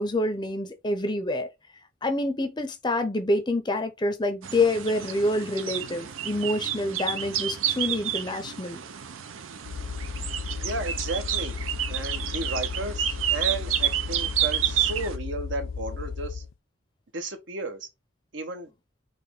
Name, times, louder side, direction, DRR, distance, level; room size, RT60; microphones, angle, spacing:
voice 1, 0.0-1.5 2.0-8.8, left 1 dB, 20° left, 0.5 m, -27 dB
sound 1, 4.4-15.2, right 10 dB, 85° right, 0.6 m, -30 dB
sound 2, 9.6-16.5, left 5 dB, 85° left, 0.4 m, -35 dB
voice 2, 10.6-11.6 11.9-16.4 17.1-17.9 18.3-18.7, right 2 dB, 70° right, 0.9 m, -33 dB
4.1 x 3.0 x 3.5 m
head